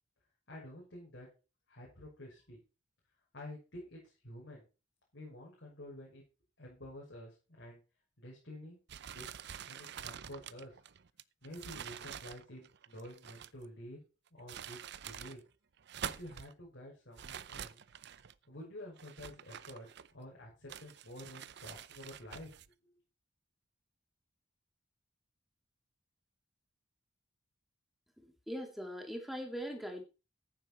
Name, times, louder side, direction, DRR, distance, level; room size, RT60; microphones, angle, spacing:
voice 1, 0.5-1.3 1.7-2.6 3.3-4.7 5.1-6.2 6.6-7.8 8.2-8.8 9.1-9.3 9.7-10.8 11.4-14.0 14.3-15.4 16.0-17.8 18.5-19.9 20.1-22.6 22.8-22.9, left 1 dB, 65° left, -4 dB, 6.3 m, -50 dB
sound 1, 8.9-13.7 14.3-15.4 15.8-16.5 17.2-18.4 19.0-20.3 20.7-22.7, right 8 dB, 60° right, 0.6 m, -47 dB
voice 2, 28.2-30.0, equal, ahead, 3 dB, 2.2 m, -41 dB
14.0 x 9.3 x 4.3 m, 0.32 s
head